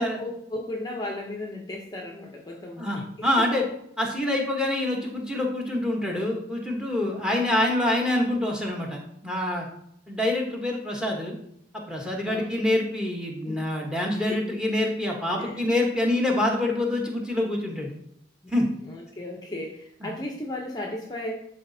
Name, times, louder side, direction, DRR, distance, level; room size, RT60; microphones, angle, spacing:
voice 1, 0.0-3.3 12.2-12.7 13.4-13.6 14.1-14.4 15.4-15.6 18.4-18.5 18.8-21.3, left 1 dB, 20° left, 0 dB, 0.6 m, -35 dB
voice 2, 2.8-3.6 4.0-9.7 10.1-11.4 11.7-17.9 18.5-18.6 20.0-20.1, left 1 dB, 5° right, 0 dB, 1.0 m, -26 dB
11.0 x 4.1 x 2.7 m, 0.73 s
head